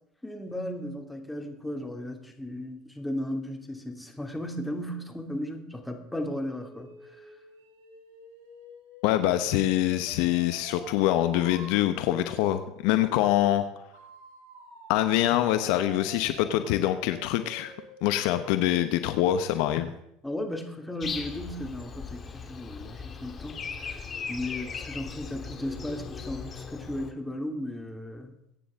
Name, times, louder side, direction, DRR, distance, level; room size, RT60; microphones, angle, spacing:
voice 1, 0.2-6.9 20.2-28.3, left 1 dB, 5° left, 3 dB, 2.6 m, -35 dB
sound 1, 6.5-11.7 13.9-19.8, right 2 dB, 75° right, 4.7 m, -48 dB
voice 2, 9.0-13.6 14.9-17.7 18.0-19.9, left 13 dB, 65° left, 10 dB, 1.0 m, -25 dB
Breathing, 21.0-27.1, left 5 dB, 35° left, 1.9 m, -38 dB
23.0 x 9.5 x 3.7 m, 0.78 s
hypercardioid pair, 80°, 0 cm